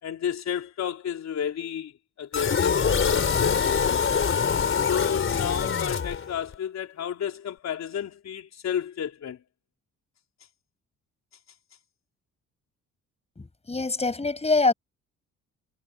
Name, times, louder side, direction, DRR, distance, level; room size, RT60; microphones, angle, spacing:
voice 1, 0.0-1.9 2.2-4.0 4.9-9.4, left 9 dB, 60° left, 4.2 m, -31 dB
sound 1, 2.3-6.5, left 6 dB, 45° left, 4.0 m, -24 dB
voice 2, 13.4-14.7, left 3 dB, 20° left, 6.4 m, -24 dB
cardioid pair, 90°, 30 cm